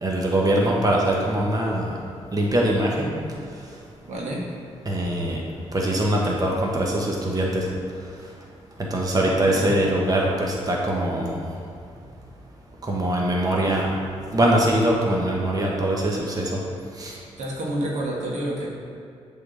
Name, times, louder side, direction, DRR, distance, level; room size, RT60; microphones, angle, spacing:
voice 1, 0.0-2.0 2.3-3.2 4.8-5.4 5.7-7.7 8.8-11.4 12.8-13.9 14.3-16.6 16.9-17.2, right 1 dB, 30° right, -2 dB, 1.4 m, -22 dB
voice 2, 4.0-4.4 9.2-9.7 17.4-18.7, right 1 dB, 70° right, -3 dB, 1.8 m, -29 dB
8.0 x 3.9 x 6.5 m, 2.4 s
cardioid pair, 55°, 12 cm